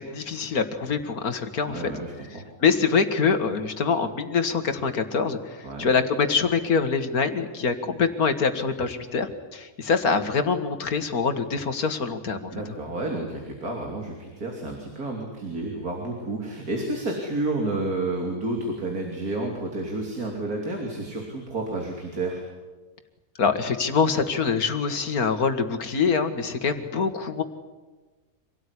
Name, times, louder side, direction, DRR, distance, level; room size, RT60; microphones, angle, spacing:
voice 1, 0.0-1.9 2.6-12.5 23.4-27.4, left 5 dB, 75° left, 8 dB, 2.2 m, -24 dB
voice 2, 1.7-2.4 5.6-5.9 12.5-22.4, right 2 dB, 75° right, 1 dB, 3.6 m, -30 dB
26.0 x 18.0 x 10.0 m, 1.2 s
omnidirectional pair, 1.6 m